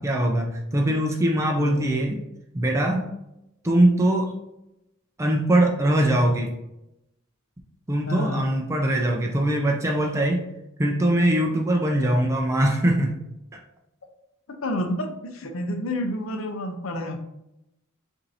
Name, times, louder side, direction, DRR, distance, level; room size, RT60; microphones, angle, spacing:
voice 1, 0.0-2.2 2.5-3.1 3.6-4.3 5.2-6.5 7.9-10.4 10.8-13.2 13.5-13.6, right 1 dB, 15° right, 1 dB, 0.4 m, -22 dB
voice 2, 0.7-1.0 1.5-1.8 8.1-8.5 14.5-17.2, left 1 dB, 70° left, 5 dB, 0.7 m, -30 dB
7.0 x 2.7 x 2.7 m, 0.87 s
head